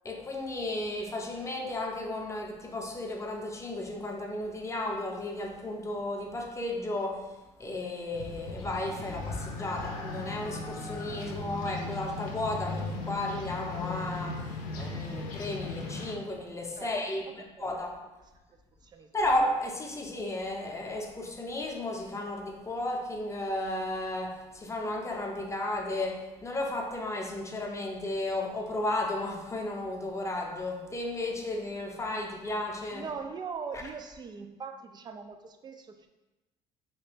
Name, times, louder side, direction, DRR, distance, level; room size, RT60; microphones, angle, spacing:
voice 1, 0.0-7.3 7.6-14.4 14.8-17.9 19.1-33.0, left 1 dB, 20° left, 1 dB, 0.6 m, -34 dB
sound 1, 8.1-16.2, left 3 dB, 75° left, 0.6 m, -37 dB
voice 2, 16.8-17.7 18.8-19.1 32.9-36.1, right 5 dB, 30° right, 7 dB, 0.4 m, -41 dB
3.1 x 2.9 x 3.3 m, 1.1 s
supercardioid pair, 90°, 14 cm